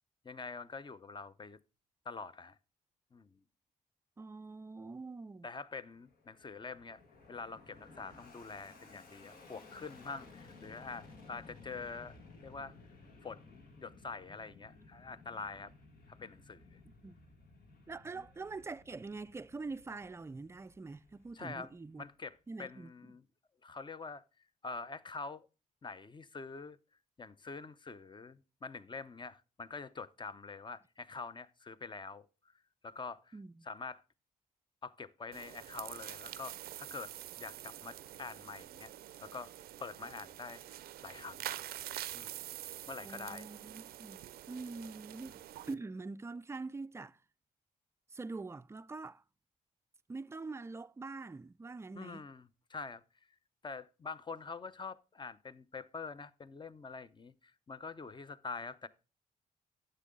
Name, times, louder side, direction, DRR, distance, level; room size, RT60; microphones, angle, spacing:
voice 1, 0.2-1.6 2.1-2.6 3.1-3.4 5.4-7.0 7.3-12.7 13.2-15.7 16.1-16.8 18.1-18.2 21.3-23.2 23.6-24.2 24.6-25.5 25.8-26.8 27.2-32.3 32.8-33.4 33.6-34.0 34.8-38.9 39.2-39.5 39.8-40.6 41.0-41.6 42.1-42.4 42.9-43.5 52.0-52.4 52.7-53.0 53.6-58.9, left 4 dB, 30° left, 0.6 m, -45 dB
voice 2, 4.2-5.5 17.0-17.2 17.9-22.1 22.5-23.1 33.3-33.7 43.0-47.2 48.1-49.2 50.1-52.3, right 3 dB, 15° right, 0.3 m, -44 dB
Fixed-wing aircraft airplane, 5.9-22.4, left 3 dB, 80° left, 1.6 m, -57 dB
sound 1, 35.3-45.7, right 13 dB, 85° right, 0.4 m, -46 dB
9.8 x 6.7 x 3.6 m
cardioid pair, 60°, 15 cm